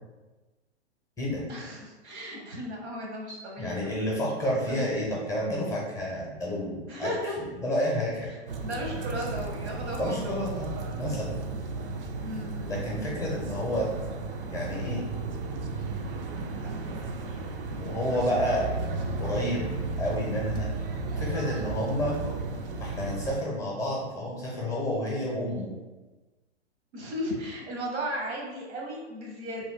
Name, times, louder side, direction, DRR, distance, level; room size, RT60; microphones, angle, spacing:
voice 1, 1.5-4.9 6.9-7.3 8.6-10.5 12.2-12.7 16.6-17.0 26.9-29.6, equal, 75° right, -1 dB, 1.0 m, -36 dB
voice 2, 3.6-7.1 7.4-8.3 9.9-10.7 10.9-11.4 12.6-13.9 14.5-15.0 17.8-18.6 19.2-19.6 20.0-20.7 21.2-22.2 22.8-25.7, left 1 dB, 10° left, -4 dB, 0.6 m, -30 dB
sound 1, 8.5-23.4, right 3 dB, 55° right, 0.5 m, -34 dB
2.6 x 2.3 x 3.6 m, 1.2 s
hypercardioid pair, 115°, 34 cm